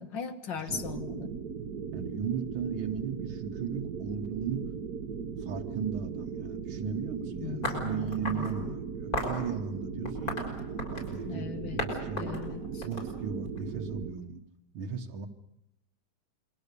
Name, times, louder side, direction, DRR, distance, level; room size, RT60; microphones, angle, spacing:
voice 1, 0.0-1.3 7.4-8.8 11.3-11.8 12.2-12.9, left 7 dB, 65° left, 8 dB, 2.2 m, -39 dB
sound 1, 0.7-14.1, right 6 dB, 55° right, 1.4 m, -38 dB
voice 2, 1.9-4.7 5.4-10.5 10.9-11.5 11.7-12.4 12.8-14.4 14.7-15.3, right 7 dB, 85° right, 2 dB, 2.2 m, -36 dB
sound 2, 7.6-8.5 9.1-9.4 10.0-11.2 11.8-11.9 12.2-13.6, left 1 dB, 45° left, 6.4 m, -34 dB
28.5 x 23.0 x 6.8 m, 0.86 s
omnidirectional pair, 2.2 m